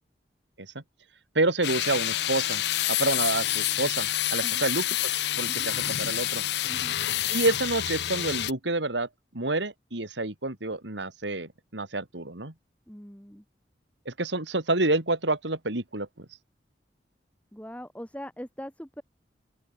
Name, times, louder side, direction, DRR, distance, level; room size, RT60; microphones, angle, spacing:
voice 1, 1.3-6.4 7.3-9.1 9.3-12.5 14.0-16.3, right 2 dB, 85° right, 2.9 m, -28 dB
sound 1, 1.6-8.5, left 13 dB, 70° left, 0.6 m, -28 dB
voice 2, 12.9-13.4 17.5-19.0, equal, 10° left, 4.5 m, -41 dB
open air
head